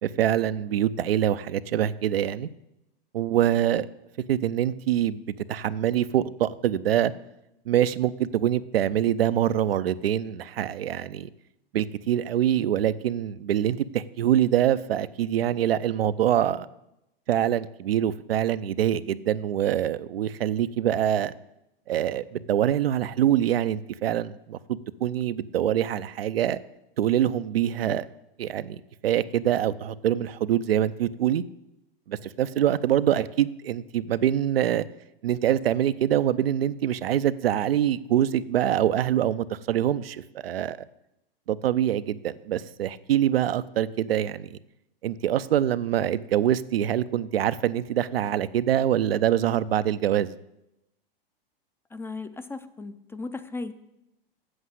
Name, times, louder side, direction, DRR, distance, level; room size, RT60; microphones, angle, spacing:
voice 1, 0.0-2.5 3.1-3.9 4.3-5.2 5.5-7.1 7.7-11.3 11.7-16.7 17.3-21.3 21.9-24.6 25.0-26.6 27.0-28.1 28.4-31.4 32.1-34.9 35.2-40.8 41.5-44.6 45.0-50.3, right 11 dB, 80° right, 13 dB, 0.6 m, -24 dB
voice 2, 51.9-53.7, left 3 dB, 10° left, 11 dB, 0.4 m, -36 dB
8.0 x 7.3 x 7.9 m, 0.87 s
hypercardioid pair, 110°, 29 cm